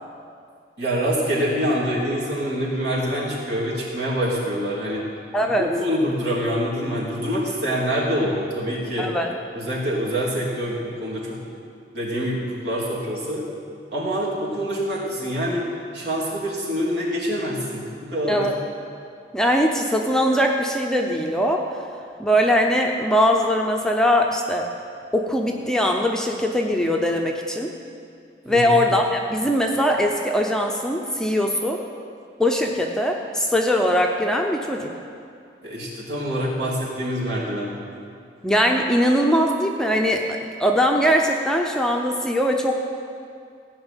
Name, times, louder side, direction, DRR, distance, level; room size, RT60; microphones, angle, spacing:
voice 1, 0.8-5.1 5.6-9.1 9.5-11.4 11.9-13.4 13.9-15.7 15.9-18.5 28.5-28.8 35.6-37.7, equal, 65° right, -5 dB, 3.2 m, -25 dB
voice 2, 5.3-5.7 9.0-9.3 18.3-18.5 19.3-21.6 22.2-24.7 25.1-27.7 28.5-31.8 32.4-34.9 38.4-42.8, equal, 5° left, 1 dB, 0.7 m, -21 dB
15.5 x 6.0 x 9.1 m, 2.4 s
head